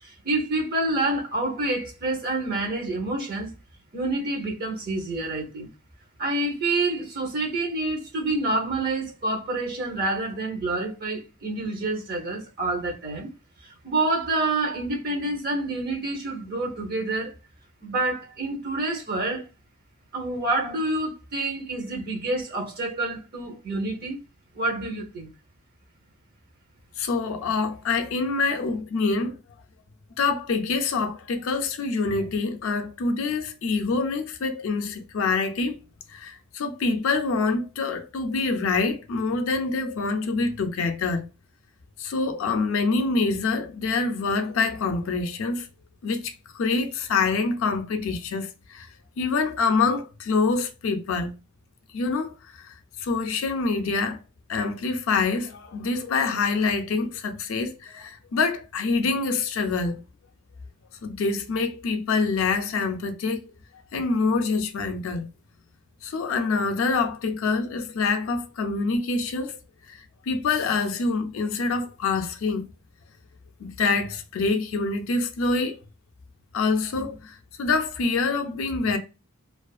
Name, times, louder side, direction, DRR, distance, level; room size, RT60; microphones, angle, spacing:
voice 1, 0.0-3.5 3.9-5.7 6.2-13.3 13.6-17.3 17.8-19.5 20.1-24.2 24.5-25.3, right 2 dB, 45° right, 0.7 m, -28 dB
voice 2, 27.0-29.4 30.2-35.8 36.1-41.2 42.0-45.7 46.0-48.9 49.2-51.3 51.9-54.2 54.5-60.0 61.0-63.4 63.9-65.3 66.0-69.6 69.9-70.0 70.3-72.6 73.6-75.8 76.5-79.0, left 4 dB, 65° left, 0.4 m, -26 dB
2.4 x 2.4 x 2.3 m
head